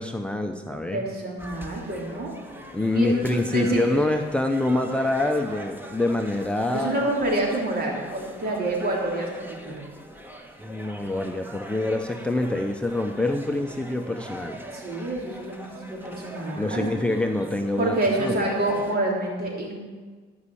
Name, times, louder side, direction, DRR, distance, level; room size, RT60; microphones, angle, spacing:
voice 1, 0.0-1.0 2.7-7.0 10.6-14.6 16.6-18.5, left 2 dB, 5° left, 5 dB, 0.7 m, -26 dB
voice 2, 0.9-2.4 2.9-4.0 6.7-9.9 14.7-16.9 17.8-19.8, right 1 dB, 50° right, -2 dB, 3.5 m, -27 dB
sound 1, 1.4-19.0, right 1 dB, 10° right, 1.5 m, -42 dB
13.0 x 5.5 x 8.6 m, 1.5 s
cardioid pair, 90°, 20 cm